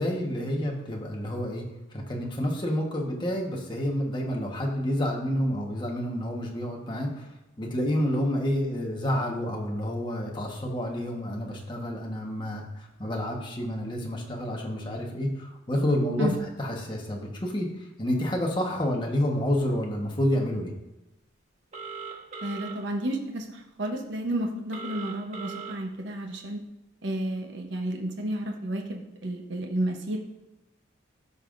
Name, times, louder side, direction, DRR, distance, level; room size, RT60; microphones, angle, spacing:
voice 1, 0.0-1.6 1.9-7.3 7.6-20.7, equal, 25° left, -1 dB, 1.2 m, -29 dB
Telephone, 21.7-22.7 24.7-25.7, right 5 dB, 35° right, 1.3 m, -38 dB
voice 2, 22.4-26.6 27.0-30.2, right 1 dB, 60° right, 2 dB, 0.9 m, -31 dB
13.5 x 5.6 x 2.6 m, 0.96 s
head